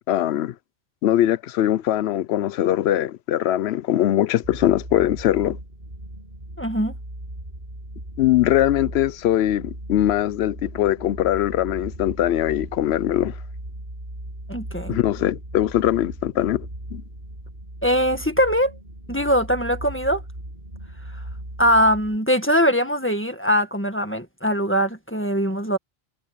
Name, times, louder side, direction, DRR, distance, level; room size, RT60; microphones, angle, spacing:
voice 1, 0.1-0.5 1.0-5.6 8.2-13.3 14.9-17.0, left 12 dB, 85° left, 0.8 m, -21 dB
sound 1, 4.4-22.2, right 1 dB, 50° right, 7.6 m, -37 dB
voice 2, 6.6-6.9 14.5-15.0 17.8-18.7 19.1-20.2 21.6-25.8, equal, 10° left, 1.7 m, -21 dB
omnidirectional pair, 1.1 m